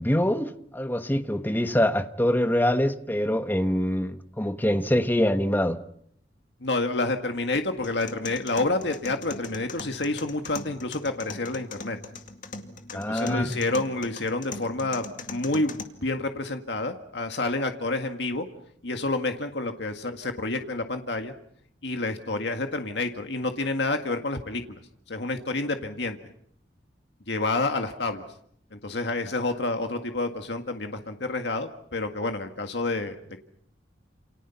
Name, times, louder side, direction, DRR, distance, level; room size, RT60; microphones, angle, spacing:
voice 1, 0.0-5.8 12.9-13.5, left 1 dB, 10° left, 9 dB, 1.3 m, -24 dB
voice 2, 6.6-12.0 12.9-18.5 18.8-21.3 21.8-24.8 25.1-26.2 27.3-28.2 28.7-33.4, left 2 dB, 70° left, 5 dB, 1.9 m, -29 dB
sound 1, 7.8-15.8, left 3 dB, 45° left, 2.2 m, -40 dB
29.5 x 28.5 x 5.8 m, 0.68 s
head